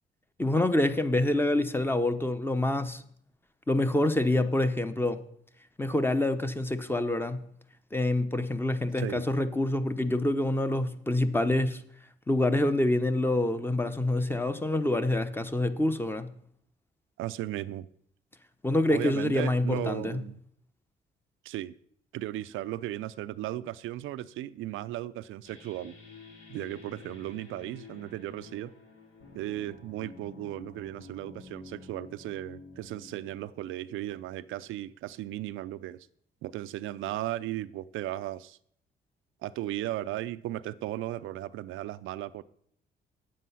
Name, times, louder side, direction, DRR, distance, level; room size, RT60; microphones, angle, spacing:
voice 1, 0.4-3.0 3.7-5.2 5.8-7.4 7.9-11.8 12.3-16.3 18.6-20.2, left 1 dB, 10° left, 10 dB, 0.8 m, -26 dB
voice 2, 17.2-17.9 18.9-20.4 21.4-21.8 22.1-25.9 26.5-28.7 29.3-36.0 36.4-38.6 39.4-42.4, right 14 dB, 85° right, 14 dB, 0.4 m, -36 dB
sound 1, 25.4-34.8, left 3 dB, 85° left, 2.1 m, -50 dB
9.1 x 7.6 x 5.5 m, 0.66 s
cardioid pair, 90°, 20 cm